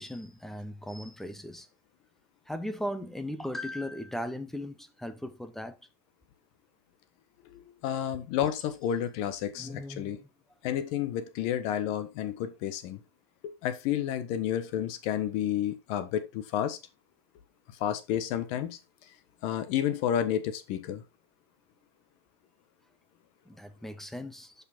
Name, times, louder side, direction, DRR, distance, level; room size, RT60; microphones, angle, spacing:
voice 1, 0.0-1.7 2.5-5.7 9.5-10.3 23.5-24.5, left 1 dB, ahead, 0.8 m, -38 dB
voice 2, 7.4-10.2 10.6-13.0 13.4-16.8 17.8-18.8 19.4-21.0, left 10 dB, 45° left, 1.3 m, -31 dB
6.7 x 5.5 x 4.1 m
supercardioid pair, 155°, 14 cm